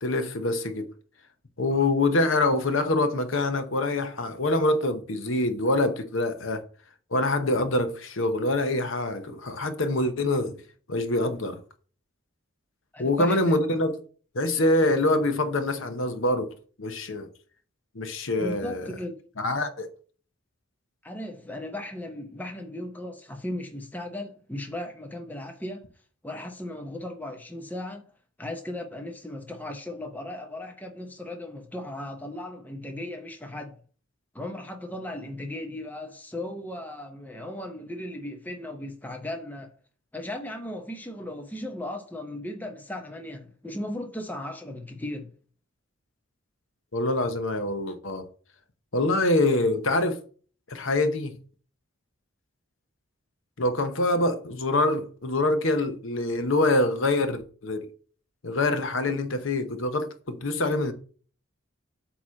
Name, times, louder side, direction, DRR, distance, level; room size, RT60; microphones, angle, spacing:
voice 1, 0.0-0.9 1.6-6.6 7.1-10.5 10.9-11.6 13.0-13.9 14.3-16.5 16.8-17.3 17.9-18.8 19.4-19.9 46.9-48.2 48.9-50.2 50.7-51.4 53.6-57.9 58.4-60.9, left 2 dB, 70° left, 0.9 m, -25 dB
voice 2, 12.9-13.5 18.4-19.1 21.0-25.9 26.2-28.1 28.4-33.7 34.3-39.7 40.1-45.3, left 1 dB, 10° left, 0.7 m, -36 dB
8.3 x 3.0 x 6.2 m
head